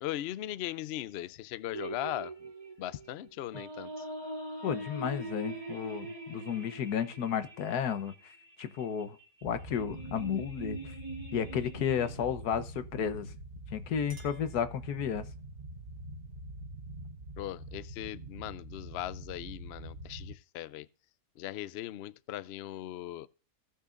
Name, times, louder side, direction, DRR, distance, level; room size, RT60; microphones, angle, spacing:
voice 1, 0.0-2.3 2.8-4.1 17.4-20.9 21.4-23.3, left 13 dB, 70° left, 0.6 m, -39 dB
sound 1, 1.7-12.2, right 2 dB, 20° right, 2.5 m, -43 dB
voice 2, 4.6-8.1 8.6-9.2 9.4-10.9 11.3-13.3 13.7-15.3, left 8 dB, 90° left, 1.4 m, -33 dB
sound 2, 9.4-20.3, right 1 dB, 75° right, 2.2 m, -45 dB
Chink clink, 13.5-15.4, right 3 dB, 60° right, 2.5 m, -58 dB
17.0 x 6.5 x 2.5 m
omnidirectional pair, 1.6 m